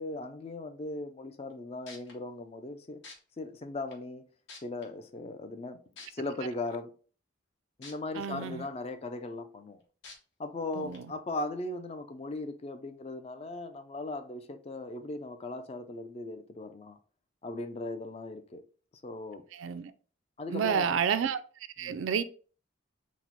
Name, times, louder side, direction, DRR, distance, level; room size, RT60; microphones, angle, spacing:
voice 1, 0.0-3.0 3.4-4.3 4.6-5.8 6.1-6.9 7.8-9.8 10.4-17.0 17.4-18.6 19.0-19.4 20.4-21.0 21.8-22.1, left 2 dB, 30° left, 0.3 m, -38 dB
sound 1, 1.5-1.6 1.9-2.1 3.0-3.1 3.9-4.0 4.5-4.8 6.0-6.1 7.8-7.9 8.4-8.5 10.0-10.1 10.9-11.0, left 3 dB, 65° left, 1.0 m, -46 dB
voice 2, 8.2-8.6 10.8-11.0 19.5-19.9 20.5-21.4 21.8-22.2, right 7 dB, 80° right, 0.3 m, -30 dB
4.1 x 2.0 x 4.4 m
head